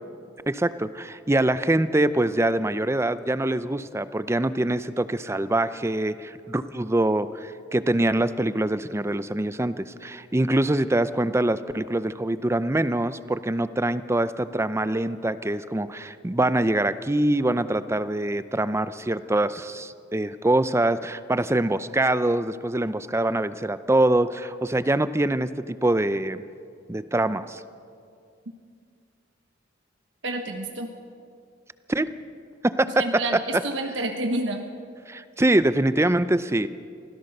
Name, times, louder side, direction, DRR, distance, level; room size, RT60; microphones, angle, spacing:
voice 1, 0.5-26.4 26.9-27.6 31.9-32.1 32.6-33.2 35.1-36.7, right 1 dB, 15° right, 14 dB, 0.5 m, -24 dB
voice 2, 30.2-30.9 32.9-34.6, right 2 dB, 85° right, 4 dB, 1.3 m, -29 dB
24.5 x 16.0 x 6.7 m, 2.3 s
head